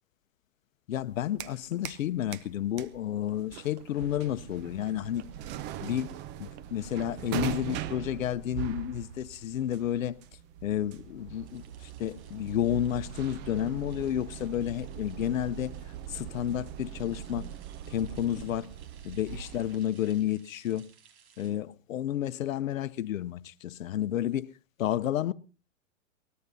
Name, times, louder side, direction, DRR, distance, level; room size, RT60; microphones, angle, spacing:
voice 1, 0.9-5.2 5.8-10.2 10.6-11.6 12.0-15.7 16.1-17.5 17.9-18.7 19.0-20.9 21.4-24.5 24.8-25.3, left 11 dB, 80° left, 0.8 m, -31 dB
sound 1, 1.0-2.1 2.3-19.8, right 11 dB, 25° right, 0.7 m, -41 dB
sound 2, 11.4-21.5, right 7 dB, 55° right, 5.0 m, -61 dB
23.0 x 19.5 x 2.7 m
hypercardioid pair, 135°, 39 cm